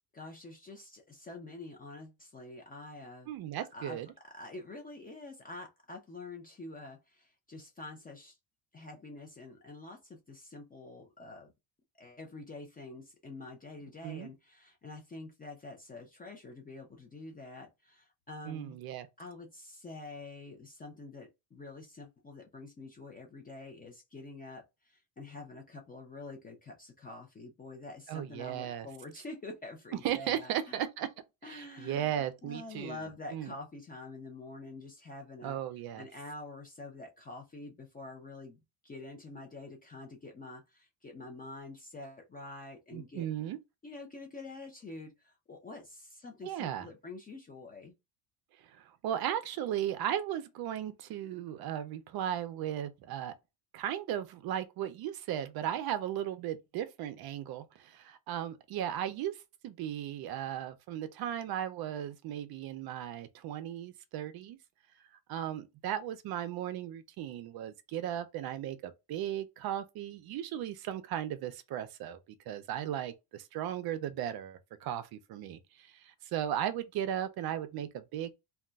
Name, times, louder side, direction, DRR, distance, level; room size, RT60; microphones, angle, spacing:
voice 1, 0.1-3.3 3.7-8.4 8.7-11.5 12.0-18.8 19.2-30.8 31.4-35.6 35.9-43.3 43.8-47.9, left 2 dB, 20° left, 0.4 m, -47 dB
voice 2, 3.3-4.1 14.0-14.3 18.4-19.1 28.1-28.9 30.0-31.1 31.4-33.0 33.3-33.5 35.4-36.1 42.9-43.6 46.4-46.9 48.7-53.3 53.7-64.6 65.3-72.2 72.5-78.3, right 10 dB, 50° right, 0.5 m, -36 dB
2.3 x 2.2 x 3.8 m
cardioid pair, 130°, 48 cm